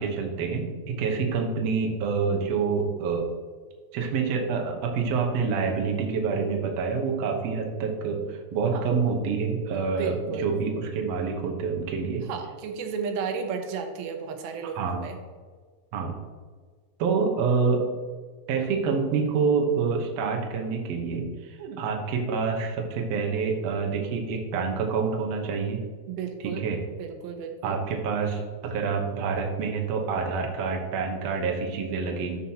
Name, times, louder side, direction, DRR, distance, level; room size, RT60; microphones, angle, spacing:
voice 1, 0.0-3.3 3.9-12.2 14.7-15.1 15.9-16.1 17.0-17.8 18.5-25.8 26.4-26.8 27.6-32.4, right 5 dB, 65° right, 1 dB, 1.7 m, -27 dB
voice 2, 9.9-10.5 12.3-15.2 21.6-21.8 26.1-26.6 27.0-27.8, right 6 dB, 90° right, 5 dB, 2.8 m, -33 dB
12.0 x 5.6 x 2.9 m, 1.5 s
omnidirectional pair, 4.2 m